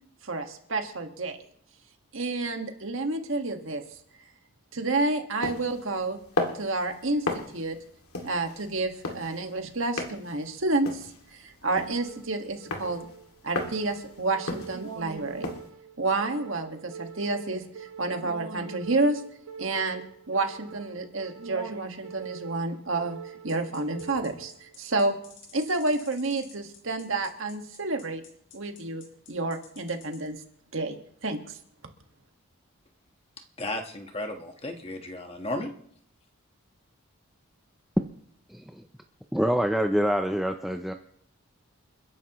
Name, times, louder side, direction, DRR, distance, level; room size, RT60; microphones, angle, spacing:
voice 1, 0.2-1.4 2.1-3.8 4.7-6.2 6.5-7.8 8.2-13.0 13.4-15.5 16.0-17.6 18.0-19.2 19.6-23.2 23.4-25.2 25.5-28.2 28.5-30.4 30.7-31.0 31.2-31.4, right 2 dB, 65° right, 4 dB, 1.7 m, -29 dB
sound 1, 5.4-15.7, left 2 dB, 90° left, 2.4 m, -36 dB
sound 2, 11.7-24.7, right 6 dB, 85° right, 1.3 m, -44 dB
sound 3, 23.5-30.3, left 6 dB, 65° left, 4.3 m, -51 dB
voice 2, 33.6-35.7, left 1 dB, 25° left, 4 dB, 1.4 m, -34 dB
voice 3, 38.5-38.8 39.3-40.9, equal, ahead, 4 dB, 0.5 m, -26 dB
29.5 x 10.5 x 3.1 m, 0.66 s
head